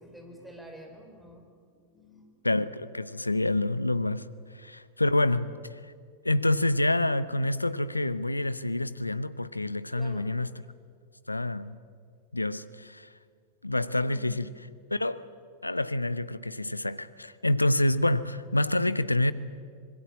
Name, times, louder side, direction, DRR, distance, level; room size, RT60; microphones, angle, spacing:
voice 1, 0.0-2.4 5.3-5.5 9.9-10.3 14.0-14.4, equal, 5° right, 5.0 m, -48 dB
voice 2, 2.4-5.5 5.8-5.9 6.2-10.5 11.3-11.8 12.3-13.1 13.6-14.5 14.9-15.3 15.6-19.3, left 1 dB, 85° left, 0.7 m, -27 dB
25.5 x 21.5 x 8.6 m
figure-of-eight pair, 90°, 0 cm